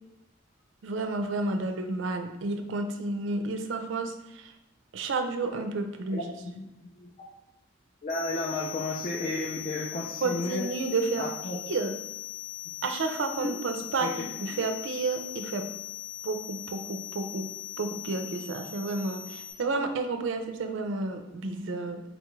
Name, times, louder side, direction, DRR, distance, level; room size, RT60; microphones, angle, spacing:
voice 1, 0.8-4.5 4.9-6.2 10.2-11.3 11.7-12.0 12.8-15.7 16.2-17.5 17.8-22.0, right 3 dB, 65° right, 6 dB, 0.4 m, -31 dB
voice 2, 6.1-7.1 8.0-10.6 11.2-11.6 13.4-13.5 14.0-14.1, left 2 dB, 35° left, -3 dB, 0.4 m, -33 dB
sound 1, 8.1-19.5, left 14 dB, 55° left, 1.0 m, -40 dB
4.0 x 2.3 x 3.0 m, 0.93 s
head